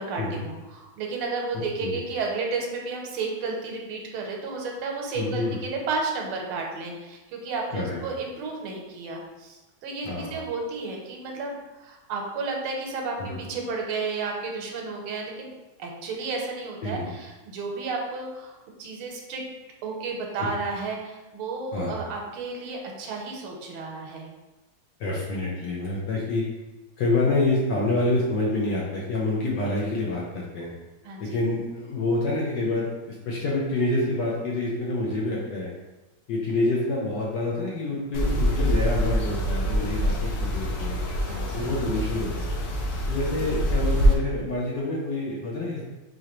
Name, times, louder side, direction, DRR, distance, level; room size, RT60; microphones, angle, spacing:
voice 1, 0.0-15.5 15.8-19.4 19.8-24.3 31.0-31.4 41.3-41.7, right 4 dB, 80° right, 1 dB, 1.5 m, -32 dB
voice 2, 5.2-5.7 7.7-8.0 10.0-10.4 13.2-13.4 16.8-17.1 20.4-20.5 21.7-22.0 25.0-26.5 27.0-30.7 31.2-35.7 36.3-41.0 41.5-42.5 43.1-45.8, left 2 dB, 70° left, -4 dB, 1.1 m, -27 dB
sound 1, 38.1-44.1, equal, 90° left, 1.6 m, -25 dB
4.8 x 2.9 x 2.9 m, 1.1 s
omnidirectional pair, 2.4 m